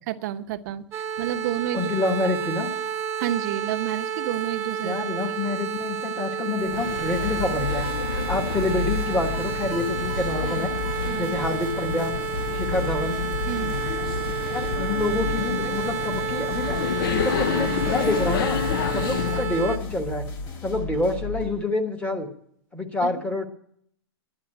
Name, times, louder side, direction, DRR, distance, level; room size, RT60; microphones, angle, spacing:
voice 1, 0.1-1.9 3.2-5.0 11.0-11.3 13.5-13.8 23.0-23.1, right 12 dB, 40° right, 8 dB, 0.8 m, -30 dB
sound 1, 0.9-19.8, right 8 dB, 15° right, 1.0 m, -31 dB
voice 2, 1.7-2.8 4.8-10.7 11.1-12.1 12.5-13.2 14.5-16.8 17.1-18.6 18.9-20.3 20.6-22.3 22.7-23.5, left 2 dB, 10° left, 5 dB, 1.2 m, -27 dB
sound 2, 6.6-19.6, left 8 dB, 50° left, 0.5 m, -30 dB
sound 3, 7.2-11.7 12.0-12.1 12.4-21.6, left 4 dB, 25° left, 2.2 m, -34 dB
10.5 x 9.8 x 8.7 m, 0.66 s
hypercardioid pair, 155°, 14 cm